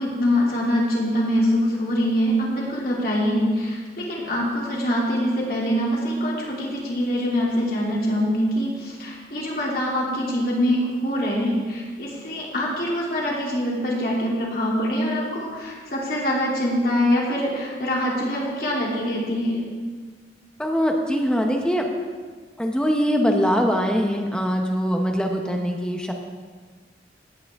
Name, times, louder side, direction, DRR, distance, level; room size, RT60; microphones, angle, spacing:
voice 1, 0.0-19.7, equal, 55° left, -4 dB, 2.9 m, -24 dB
voice 2, 20.6-21.9 22.6-26.1, equal, 5° left, 2 dB, 0.8 m, -22 dB
16.5 x 8.9 x 3.5 m, 1.5 s
head